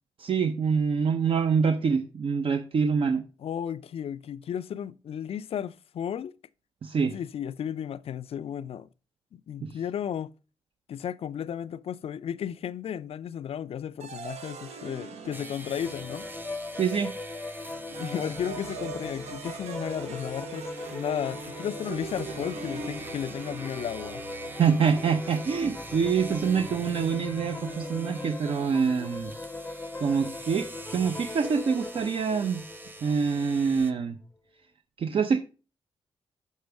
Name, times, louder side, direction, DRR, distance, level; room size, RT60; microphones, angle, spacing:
voice 1, 0.2-3.2 6.8-7.1 9.6-9.8 16.8-17.1 24.5-29.3 30.0-32.6 33.0-34.2 35.0-35.4, right 6 dB, 60° right, 0.7 m, -25 dB
voice 2, 3.4-6.3 7.1-8.9 9.3-10.3 10.9-16.3 18.0-24.2, left 9 dB, 65° left, 0.4 m, -34 dB
sound 1, 14.0-16.6 17.6-28.8, right 3 dB, 85° right, 1.0 m, -42 dB
sound 2, 15.3-33.9, right 2 dB, 20° right, 0.9 m, -46 dB
sound 3, 15.8-33.9, left 2 dB, 15° left, 0.6 m, -40 dB
6.8 x 6.5 x 3.4 m
supercardioid pair, 55°, 11 cm